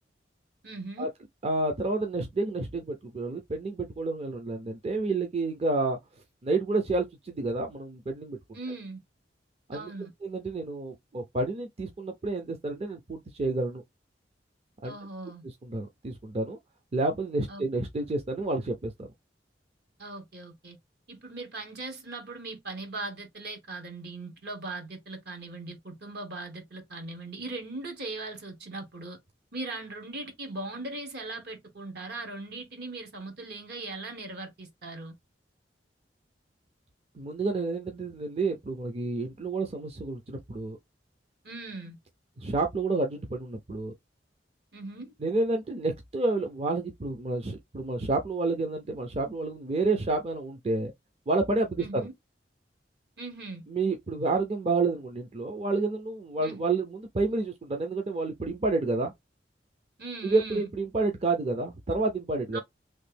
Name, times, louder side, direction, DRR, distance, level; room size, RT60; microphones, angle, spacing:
voice 1, 0.6-1.1 8.5-9.0 9.7-10.1 14.8-15.4 17.5-17.6 20.0-20.8 21.1-29.2 29.5-35.1 41.4-42.0 44.7-45.1 51.8-52.1 53.2-53.6 56.4-56.6 60.0-60.7 62.5-62.6, right 2 dB, 65° right, 1.2 m, -39 dB
voice 2, 1.4-6.0 6.4-8.4 9.7-9.9 10.2-13.8 14.8-14.9 15.6-16.6 16.9-18.9 37.2-40.8 42.4-43.9 45.2-50.9 51.3-52.1 53.7-59.1 60.2-62.6, right 3 dB, 35° right, 0.5 m, -29 dB
3.1 x 2.5 x 3.3 m
head